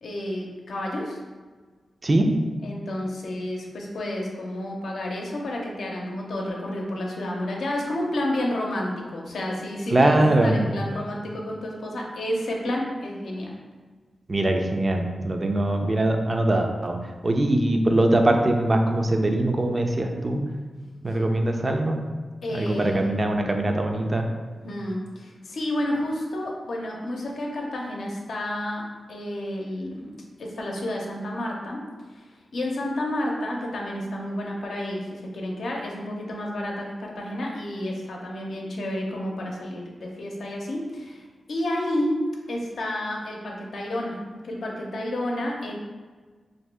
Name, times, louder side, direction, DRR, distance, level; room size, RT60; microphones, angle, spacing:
voice 1, 0.0-1.2 2.6-13.5 22.4-23.2 24.6-30.1 30.4-31.8 32.1-32.2 32.5-42.2 42.5-45.7, left 1 dB, 85° left, -1 dB, 0.6 m, -30 dB
voice 2, 9.9-10.6 14.3-17.0 17.2-20.4 21.0-22.0 22.5-24.3, right 1 dB, 35° right, 4 dB, 0.4 m, -22 dB
2.9 x 2.7 x 3.4 m, 1.4 s
cardioid pair, 70°, 0 cm